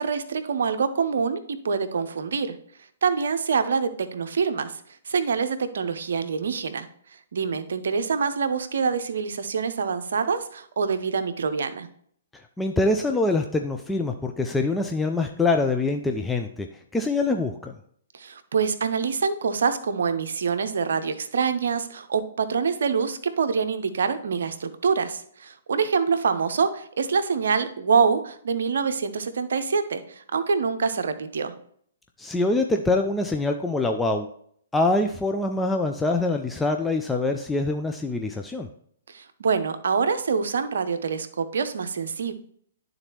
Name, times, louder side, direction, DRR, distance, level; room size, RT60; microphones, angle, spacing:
voice 1, 0.0-2.6 3.0-4.8 5.1-6.9 7.3-11.9 18.1-31.5 39.1-42.3, right 5 dB, 65° right, 9 dB, 0.7 m, -25 dB
voice 2, 12.6-17.7 32.2-34.3 34.7-38.7, left 2 dB, 5° left, 3 dB, 0.4 m, -24 dB
11.0 x 3.9 x 3.0 m, 0.63 s
figure-of-eight pair, 120°, 0 cm